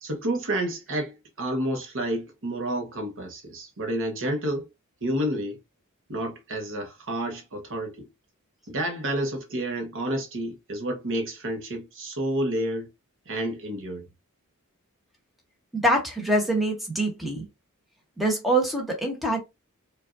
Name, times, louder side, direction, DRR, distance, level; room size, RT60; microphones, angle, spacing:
voice 1, 0.0-4.7 5.0-5.6 6.1-8.1 8.7-12.9 13.3-14.1, right 1 dB, 60° right, 1.0 m, -30 dB
voice 2, 15.7-17.4 18.2-19.4, right 1 dB, ahead, 1.0 m, -24 dB
4.9 x 2.5 x 2.5 m
head